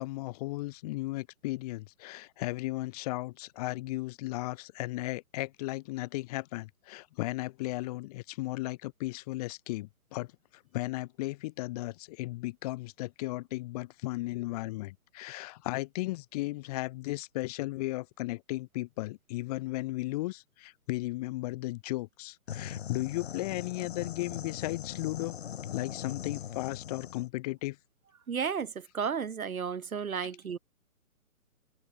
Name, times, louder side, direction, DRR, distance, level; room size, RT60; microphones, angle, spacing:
voice 1, 0.0-10.3 10.5-25.4 25.7-27.8, left 20 dB, 25° left, 5.0 m, -35 dB
sound 1, 22.5-27.3, left 9 dB, 45° left, 1.7 m, -40 dB
voice 2, 28.3-30.6, right 6 dB, 70° right, 3.5 m, -33 dB
hypercardioid pair, 160°, 44 cm